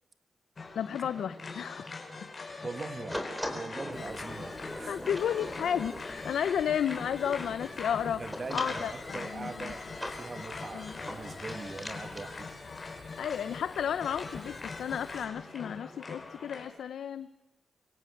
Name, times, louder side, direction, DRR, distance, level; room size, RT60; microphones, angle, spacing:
sound 1, 0.6-16.7, left 3 dB, 40° left, 5.6 m, -42 dB
voice 1, 0.8-1.9 4.9-8.2 8.5-9.7 10.7-10.9 13.2-17.3, left 8 dB, 90° left, 12 dB, 0.7 m, -32 dB
voice 2, 2.6-3.2 3.5-5.0 8.2-9.9 10.1-12.5, right 3 dB, 40° right, 10 dB, 1.6 m, -41 dB
sound 2, 3.1-12.3, equal, ahead, 4.0 m, -41 dB
Fire, 3.9-15.2, left 5 dB, 65° left, 3.3 m, -54 dB
24.5 x 17.0 x 8.1 m, 0.95 s
cardioid pair, 80°, 0 cm